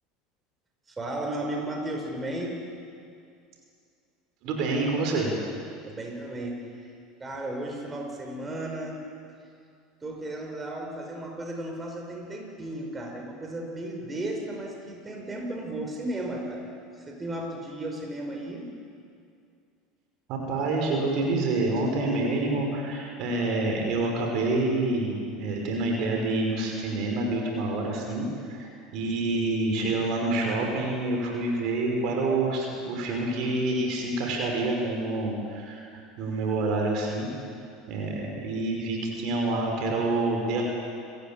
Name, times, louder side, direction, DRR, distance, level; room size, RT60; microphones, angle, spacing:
voice 1, 0.9-2.6 5.8-6.9 7.2-9.0 10.0-16.7 17.0-18.7, right 1 dB, 20° right, 1 dB, 5.7 m, -34 dB
voice 2, 4.4-5.3 20.3-35.9 36.2-37.3 37.9-40.6, right 2 dB, 55° right, 1 dB, 5.5 m, -27 dB
28.5 x 15.0 x 9.1 m, 2.3 s
hypercardioid pair, 75°, 0 cm